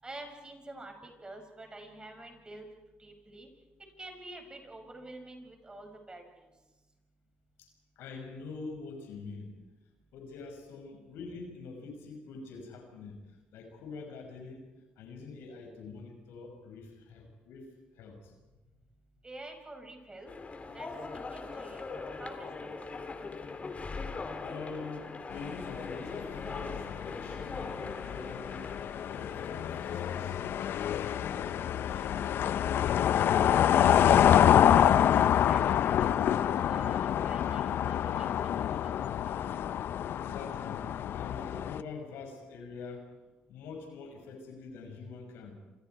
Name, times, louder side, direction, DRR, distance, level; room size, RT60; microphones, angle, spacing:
voice 1, 0.0-2.7 3.0-3.5 4.0-6.5 19.2-20.3 20.7-20.9 21.1-21.9 22.2-22.9 35.0-38.5 38.8-39.4, right 2 dB, 20° right, 4 dB, 6.4 m, -48 dB
voice 2, 8.0-9.5 10.1-13.2 13.5-14.6 15.0-17.6 17.9-18.3 24.3-28.7 29.1-30.6 31.0-34.3 40.2-43.0 43.5-45.6, left 4 dB, 90° left, 3 dB, 6.0 m, -45 dB
sound 1, 20.3-30.4, left 4 dB, 35° left, 2.7 m, -41 dB
sound 2, 25.4-41.8, left 10 dB, 70° left, 0.7 m, -27 dB
27.5 x 27.0 x 4.7 m, 1.1 s
cardioid pair, 85°, 4 cm